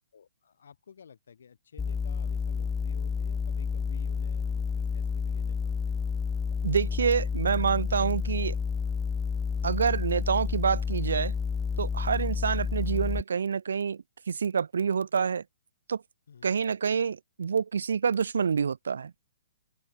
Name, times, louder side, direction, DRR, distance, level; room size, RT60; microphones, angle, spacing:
voice 1, 0.1-6.0 12.9-13.1 16.3-16.5, left 7 dB, 75° left, 3.7 m, -53 dB
sound 1, 1.8-13.2, left 5 dB, 10° left, 0.4 m, -30 dB
voice 2, 6.6-8.5 9.6-11.3 11.8-15.4 15.9-16.0 16.4-19.1, right 6 dB, 80° right, 0.7 m, -27 dB
open air
hypercardioid pair, 140°, 0 cm